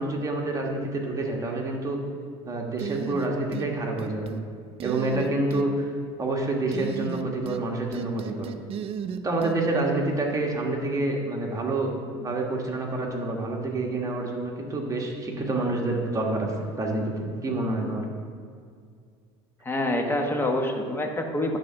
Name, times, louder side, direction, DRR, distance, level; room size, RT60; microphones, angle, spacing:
voice 1, 0.0-2.0 2.4-4.3 4.8-5.8 6.2-8.5 9.2-11.9 12.2-18.0, right 2 dB, 25° right, 0 dB, 1.4 m, -28 dB
sound 1, 2.8-3.7 4.0-4.4 4.8-5.7 6.7-7.6 7.9-9.6, right 8 dB, 45° right, 0.5 m, -34 dB
voice 2, 19.6-21.6, left 1 dB, 15° left, 3 dB, 1.0 m, -26 dB
9.6 x 3.8 x 5.8 m, 2.1 s
supercardioid pair, 95°, 14 cm